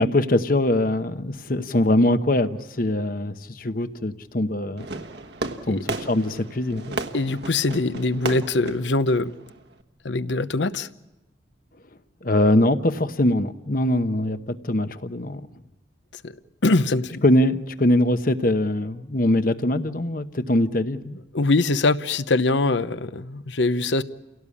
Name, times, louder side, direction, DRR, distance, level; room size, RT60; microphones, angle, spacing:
voice 1, 0.0-4.9 5.7-7.0 12.2-15.4 17.2-21.2, left 1 dB, 50° left, 10 dB, 1.0 m, -22 dB
Fireworks, 4.8-9.8, right 3 dB, 65° right, 1.3 m, -34 dB
voice 2, 7.1-9.3 10.0-10.9 16.1-17.2 21.3-24.0, left 2 dB, 75° left, 13 dB, 0.8 m, -23 dB
29.5 x 17.5 x 8.5 m, 0.99 s
head